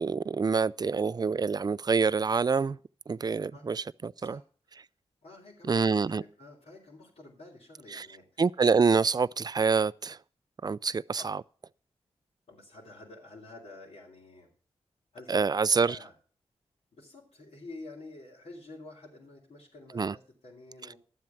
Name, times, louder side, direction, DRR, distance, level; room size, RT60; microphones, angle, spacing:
voice 1, 0.0-2.8 3.1-4.4 5.7-6.2 7.9-8.1 8.4-10.2 10.6-11.4 15.3-16.0 19.9-20.1, right 5 dB, 35° right, 0.4 m, -26 dB
voice 2, 5.2-8.4 11.2-11.3 12.5-14.5 15.1-16.1 16.9-21.0, left 2 dB, 70° left, 3.5 m, -49 dB
12.0 x 7.6 x 5.8 m
supercardioid pair, 45°, 12 cm